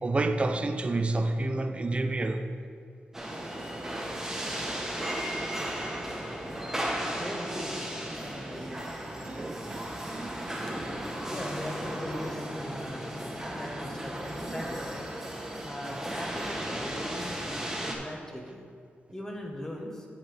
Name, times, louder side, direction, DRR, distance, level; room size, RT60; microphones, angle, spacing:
voice 1, 0.0-2.5 9.3-9.8 10.1-10.5 14.5-14.7 17.8-18.0, right 2 dB, 30° right, 0.5 m, -30 dB
sound 1, 3.1-17.9, right 1 dB, 10° right, 1.4 m, -35 dB
voice 2, 7.0-8.9 11.3-13.1 13.5-14.9 15.6-18.7 19.1-20.1, equal, 15° left, 1.3 m, -40 dB
Bass guitar, 11.3-17.6, left 3 dB, 35° left, 0.6 m, -48 dB
9.6 x 7.5 x 3.4 m
cardioid pair, 85°, 4 cm